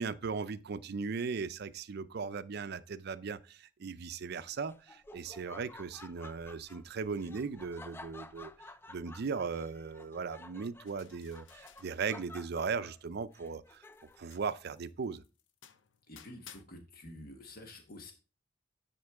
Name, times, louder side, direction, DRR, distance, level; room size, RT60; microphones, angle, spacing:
voice 1, 0.0-8.5 8.9-13.8 14.2-15.2, right 5 dB, 55° right, 0.5 m, -38 dB
Laughter, 4.3-14.3, left 2 dB, 10° left, 0.3 m, -53 dB
sound 1, 10.9-12.8 13.1-16.6, left 9 dB, 70° left, 0.6 m, -59 dB
voice 2, 16.1-18.1, left 1 dB, 50° left, 1.2 m, -49 dB
9.6 x 4.4 x 3.5 m
head